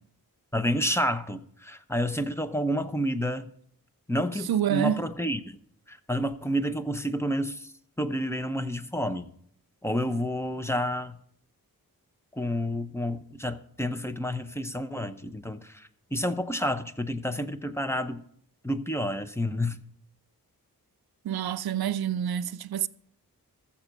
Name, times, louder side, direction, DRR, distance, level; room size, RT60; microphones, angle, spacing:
voice 1, 0.5-3.5 4.1-5.6 5.9-7.7 8.0-9.3 9.8-11.2 12.3-18.2 18.6-19.8, equal, 5° left, 0.8 m, -29 dB
voice 2, 4.5-5.0 21.2-22.9, right 9 dB, 85° right, 0.5 m, -27 dB
13.5 x 7.3 x 5.3 m
cardioid pair, 60°, 37 cm